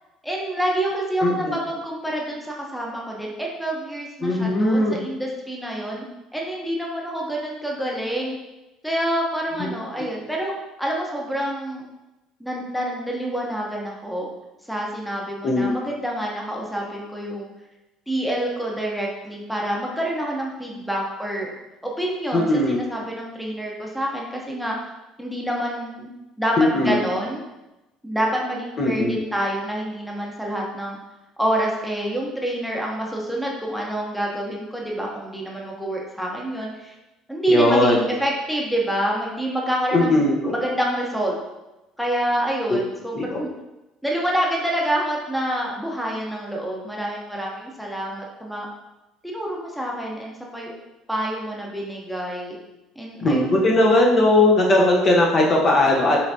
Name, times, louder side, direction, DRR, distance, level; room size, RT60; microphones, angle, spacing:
voice 1, 0.2-6.0 6.3-8.4 8.8-10.5 10.8-11.8 12.4-14.3 14.7-17.5 18.1-21.5 21.8-24.7 25.2-26.1 26.4-27.4 28.0-31.0 31.4-36.9 37.3-40.2 40.5-41.4 42.0-43.5 44.0-48.7 49.2-50.7 51.1-52.6 53.0-53.9, right 1 dB, ahead, -2 dB, 0.8 m, -27 dB
voice 2, 1.2-1.6 4.2-5.0 9.6-9.7 15.4-15.7 22.3-22.8 26.6-27.0 28.8-29.2 37.5-38.0 39.9-40.6 42.7-42.8 43.1-43.4 53.2-56.2, left 2 dB, 40° left, -1 dB, 0.8 m, -18 dB
5.7 x 3.2 x 2.7 m, 1.0 s
cardioid pair, 120°, 0 cm